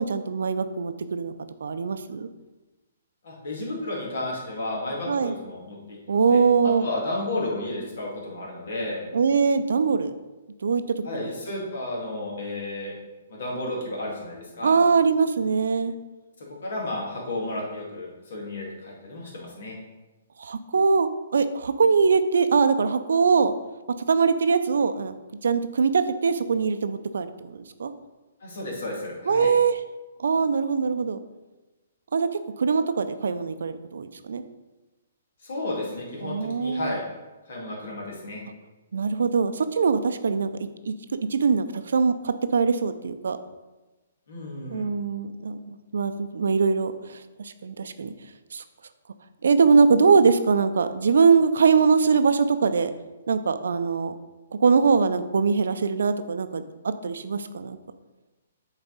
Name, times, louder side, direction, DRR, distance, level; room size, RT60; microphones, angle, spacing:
voice 1, 0.0-1.3 1.6-2.3 5.1-5.3 6.1-6.8 9.1-10.1 10.6-11.3 14.6-15.9 20.4-23.5 23.9-25.1 25.4-27.9 29.3-29.8 30.2-31.2 32.1-32.3 32.6-34.4 36.2-36.9 38.9-40.5 40.8-40.9 41.3-43.4 44.7-48.1 48.5-48.6 49.4-52.9 53.3-54.2 54.6-57.8, right 5 dB, 75° right, 11 dB, 0.4 m, -22 dB
voice 2, 3.2-9.0 11.0-13.0 13.3-14.8 16.4-19.8 28.4-29.5 35.4-37.0 37.4-38.4 44.3-44.9, left 2 dB, 65° left, -2 dB, 2.2 m, -32 dB
6.9 x 4.1 x 4.0 m, 1.1 s
hypercardioid pair, 135°, 0 cm